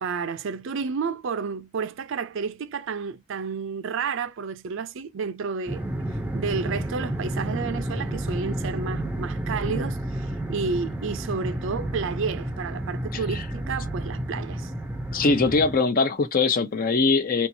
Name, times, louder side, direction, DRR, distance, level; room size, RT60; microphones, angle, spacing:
voice 1, 0.0-5.8 6.3-14.7, right 5 dB, 65° right, 0.4 m, -31 dB
sound 1, 5.7-15.8, right 1 dB, 5° right, 0.5 m, -31 dB
voice 2, 15.1-17.5, left 3 dB, 45° left, 0.6 m, -22 dB
4.2 x 2.4 x 2.7 m
head